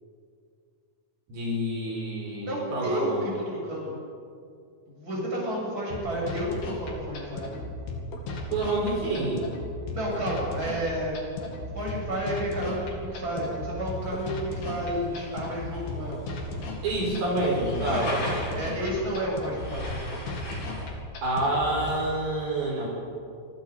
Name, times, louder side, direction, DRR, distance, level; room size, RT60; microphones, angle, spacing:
voice 1, 1.3-3.3 8.5-9.4 16.8-18.2 21.2-22.9, right 1 dB, 65° right, -3 dB, 6.5 m, -28 dB
voice 2, 2.4-4.0 4.9-7.5 9.9-11.2 11.7-16.1 17.7-18.1 18.6-19.9, right 1 dB, 20° right, -4 dB, 8.5 m, -31 dB
sound 1, 5.9-21.9, left 2 dB, 80° left, 4.8 m, -36 dB
sound 2, 11.7-20.9, left 1 dB, 55° left, 8.2 m, -40 dB
28.0 x 23.0 x 5.6 m, 2.3 s
omnidirectional pair, 4.4 m